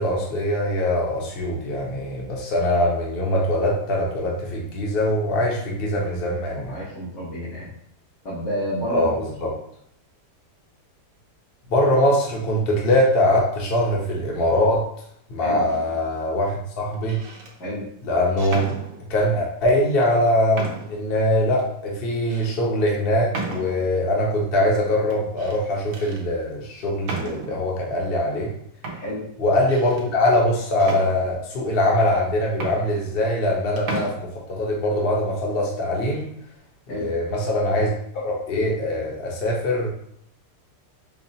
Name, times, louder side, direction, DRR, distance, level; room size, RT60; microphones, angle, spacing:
voice 1, 0.0-6.8 8.9-9.5 11.7-14.8 15.3-17.2 18.0-18.7 19.1-28.5 29.4-36.3 36.9-37.9 38.1-39.9, left 1 dB, 45° left, -2 dB, 0.9 m, -22 dB
voice 2, 6.7-7.7 8.2-9.1 15.4-15.7 17.6-17.9 28.9-29.2 36.9-37.1, equal, 90° left, -11 dB, 2.0 m, -29 dB
sound 1, 15.7-16.1 16.9-17.5 18.4-19.3 20.0-20.1 20.5-21.1 21.6-21.7 22.3-22.5 23.3-24.0 25.1-25.6 25.9-26.2 27.0-27.7 28.4-28.5 28.8-30.1 30.8-31.6 32.2-32.3 32.5-33.5 33.8-34.1, right 3 dB, 65° right, 1.0 m, -34 dB
5.3 x 2.4 x 2.7 m, 0.68 s
omnidirectional pair, 1.8 m